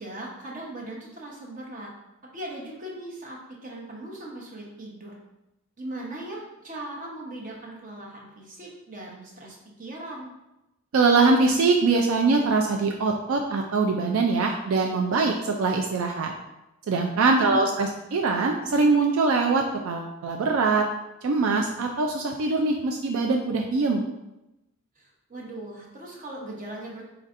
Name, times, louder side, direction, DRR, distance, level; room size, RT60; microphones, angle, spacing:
voice 1, 0.0-1.9 2.3-5.1 5.8-10.3 17.3-18.0 25.0-27.0, right 1 dB, 40° right, -2 dB, 0.9 m, -39 dB
voice 2, 10.9-16.3 16.9-20.8 21.2-24.0, right 3 dB, 75° right, 3 dB, 0.4 m, -23 dB
4.3 x 4.0 x 2.5 m, 0.94 s
head